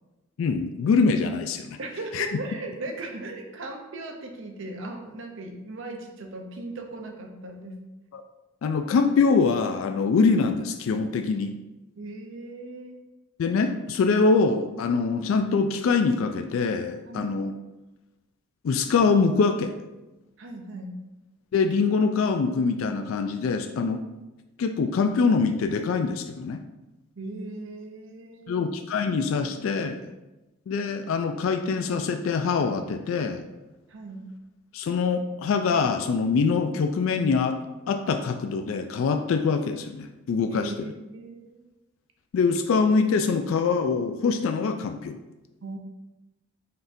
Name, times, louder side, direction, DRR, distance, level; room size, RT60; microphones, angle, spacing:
voice 1, 0.4-1.8 2.1-2.3 8.1-8.2 8.6-11.5 13.4-17.5 18.6-19.7 21.5-24.0 24.6-26.6 28.5-29.9 30.7-33.4 34.7-37.6 37.9-40.7 42.3-45.2, left 4 dB, 70° left, 7 dB, 0.3 m, -24 dB
voice 2, 1.8-7.8 12.0-13.0 17.0-17.3 20.4-21.1 27.2-28.6 29.4-30.1 33.9-34.3 40.5-41.6 45.6-45.8, right 2 dB, 60° right, 3 dB, 0.7 m, -38 dB
5.7 x 3.5 x 2.7 m, 1.0 s
head